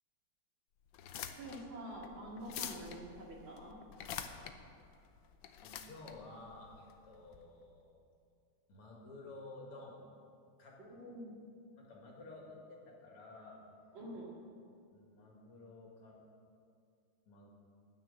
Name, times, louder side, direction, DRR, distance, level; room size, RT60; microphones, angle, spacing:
sound 1, 0.9-7.4, left 9 dB, 70° left, 1.2 m, -47 dB
voice 1, 1.4-3.8 10.8-11.4 13.9-14.3, right 1 dB, 60° right, -3 dB, 2.8 m, -47 dB
voice 2, 5.6-8.0 8.7-10.0 10.6-10.8 11.8-13.6 14.9-16.2 17.3-17.5, left 2 dB, 90° left, -2 dB, 3.0 m, -52 dB
9.8 x 9.5 x 7.0 m, 2.3 s
omnidirectional pair, 2.4 m